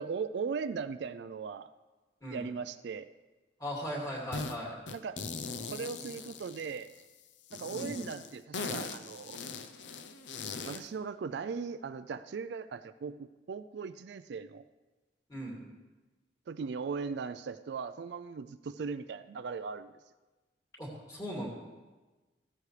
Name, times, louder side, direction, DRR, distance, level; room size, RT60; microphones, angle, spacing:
voice 1, 0.0-1.7 2.3-3.1 4.9-5.2 5.7-6.9 7.5-9.4 10.7-14.6 16.5-19.9, right 5 dB, 65° right, 12 dB, 0.3 m, -38 dB
voice 2, 3.6-4.8 7.7-8.0 15.3-15.7 20.8-21.5, equal, 20° left, -2 dB, 2.5 m, -38 dB
sound 1, 4.3-4.6 4.9-7.0 7.5-10.9, left 4 dB, 75° left, 0.7 m, -40 dB
15.0 x 13.0 x 3.3 m, 1.2 s
head